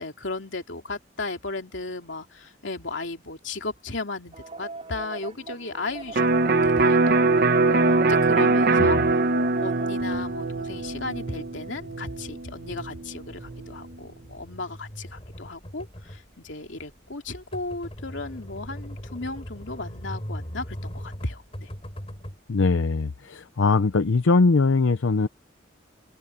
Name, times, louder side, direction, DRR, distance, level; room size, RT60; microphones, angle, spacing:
voice 1, 0.0-9.0 9.6-21.7, left 3 dB, 70° left, 2.9 m, -35 dB
sound 1, 4.3-10.0, right 3 dB, 35° right, 5.8 m, -39 dB
Electric guitar, 6.2-13.8, right 3 dB, 50° right, 1.0 m, -22 dB
sound 2, 10.0-22.4, equal, 30° left, 4.9 m, -40 dB
voice 2, 22.5-25.3, left 3 dB, 85° left, 0.7 m, -21 dB
open air
head